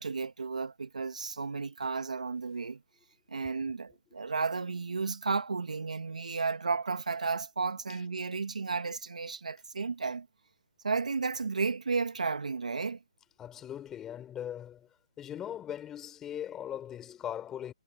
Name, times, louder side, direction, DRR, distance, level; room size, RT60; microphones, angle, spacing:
voice 1, 0.0-2.8 3.3-10.3 10.8-13.0, right 4 dB, 85° right, 2.1 m, -33 dB
voice 2, 13.4-14.9 15.2-17.7, left 10 dB, 10° left, 5.0 m, -40 dB
hypercardioid pair, 165°, 4 cm